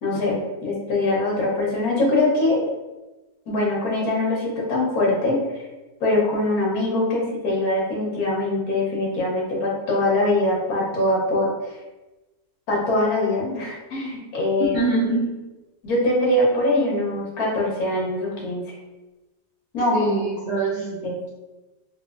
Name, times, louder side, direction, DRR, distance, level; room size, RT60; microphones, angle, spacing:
voice 1, 0.0-2.6 3.5-5.6 6.0-11.5 12.7-14.8 15.8-18.6 19.7-19.9 20.4-21.2, left 2 dB, 80° left, -3 dB, 1.4 m, -23 dB
voice 2, 14.7-15.3 19.9-20.9, right 2 dB, 60° right, -8 dB, 0.5 m, -23 dB
3.1 x 2.9 x 2.3 m, 1.1 s
omnidirectional pair, 1.5 m